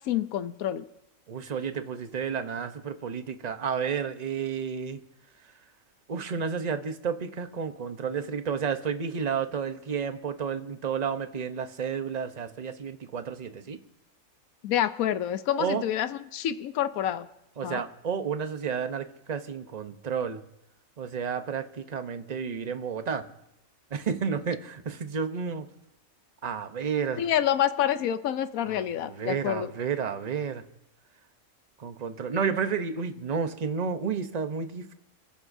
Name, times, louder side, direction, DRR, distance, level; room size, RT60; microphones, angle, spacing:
voice 1, 0.1-0.8 14.6-17.3 17.6-17.8 27.2-29.7, left 10 dB, 80° left, 12 dB, 1.2 m, -27 dB
voice 2, 1.3-5.0 6.1-13.8 15.6-15.8 17.6-20.4 21.0-23.3 23.9-25.6 26.4-27.3 28.7-30.6 31.8-34.9, right 6 dB, 35° right, 8 dB, 0.9 m, -31 dB
27.5 x 14.5 x 2.7 m, 0.87 s
omnidirectional pair, 1.5 m